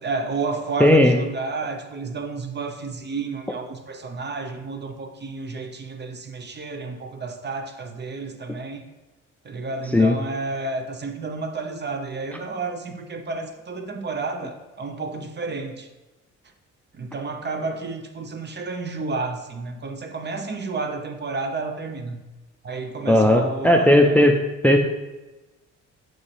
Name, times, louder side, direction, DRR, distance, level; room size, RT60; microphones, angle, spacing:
voice 1, 0.0-8.8 9.4-15.9 16.9-22.2 22.6-24.2, right 3 dB, 35° right, 6 dB, 0.8 m, -31 dB
voice 2, 0.8-1.1 9.9-10.1 23.1-24.4 24.6-24.8, left 1 dB, 5° left, 4 dB, 0.5 m, -15 dB
7.1 x 6.2 x 3.3 m, 1.1 s
cardioid pair, 90°, 30 cm